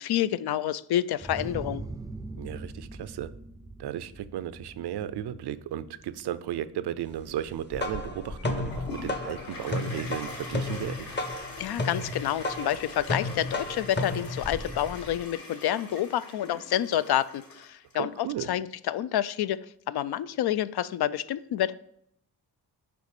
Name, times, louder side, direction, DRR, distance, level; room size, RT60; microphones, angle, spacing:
voice 1, 0.0-1.8 11.6-19.6 19.9-21.7, left 11 dB, 75° left, 16 dB, 0.5 m, -28 dB
sound 1, 1.2-6.7, right 2 dB, 10° right, 0.3 m, -42 dB
voice 2, 2.4-3.3 3.8-11.0 18.0-18.5, right 11 dB, 90° right, 15 dB, 0.6 m, -35 dB
sound 2, 7.5-15.2, left 2 dB, 30° left, 0.8 m, -33 dB
Toilet flush, 8.7-17.9, left 3 dB, 60° left, 1.9 m, -43 dB
6.9 x 5.1 x 6.6 m, 0.71 s
wide cardioid pair, 130°, 38 cm